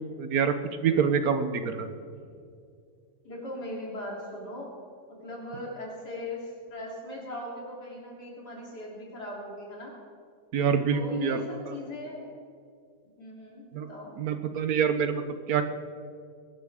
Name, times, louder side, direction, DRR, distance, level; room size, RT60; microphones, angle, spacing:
voice 1, 0.2-0.5 0.8-1.9 10.5-11.7 13.7-13.9 14.2-15.6, right 7 dB, 70° right, 9 dB, 1.3 m, -26 dB
voice 2, 3.2-4.8 5.1-9.9 10.9-12.3 13.2-14.1, left 1 dB, 85° left, -4 dB, 4.0 m, -39 dB
22.5 x 12.0 x 3.6 m, 2.3 s
omnidirectional pair, 1.7 m